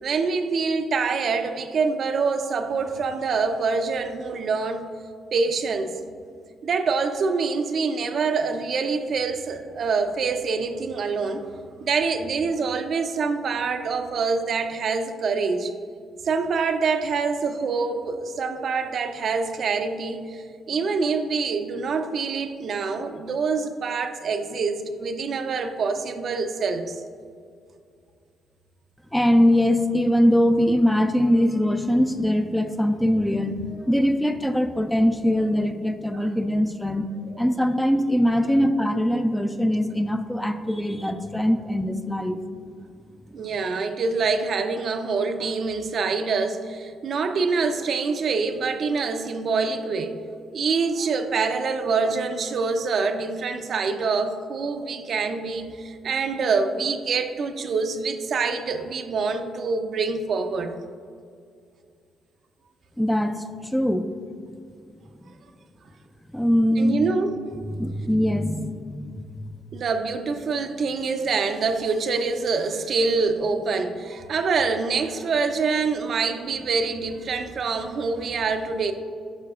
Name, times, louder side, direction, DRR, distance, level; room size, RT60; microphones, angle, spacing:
voice 1, 0.0-4.8 5.3-6.0 6.6-11.5 11.8-15.7 16.2-27.0 36.1-36.3 37.3-37.4 38.4-38.6 43.3-50.1 50.5-60.7 66.8-67.4 69.7-78.9, right 4 dB, 55° right, 7 dB, 0.5 m, -25 dB
voice 2, 29.1-37.1 37.4-42.4 63.0-63.4 63.7-64.1 66.3-67.1 67.8-69.1, equal, 5° left, 7 dB, 0.4 m, -22 dB
9.4 x 5.7 x 2.4 m, 2.2 s
cardioid pair, 90°, 0 cm